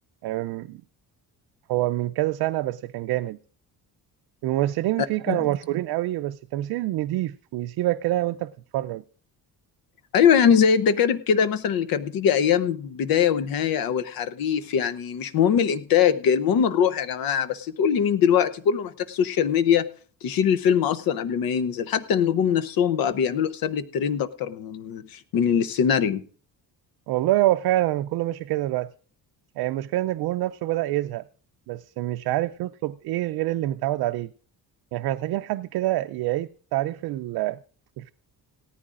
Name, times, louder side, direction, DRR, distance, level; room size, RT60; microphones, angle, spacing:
voice 1, 0.2-0.8 1.7-3.4 4.4-9.0 27.1-28.9 29.6-31.2 31.7-34.3 34.9-37.6 38.0-38.1, right 15 dB, 75° right, 0.5 m, -26 dB
voice 2, 10.1-19.9 20.2-26.2, left 8 dB, 65° left, 0.8 m, -22 dB
18.0 x 14.0 x 2.5 m
cardioid pair, 180°, 38 cm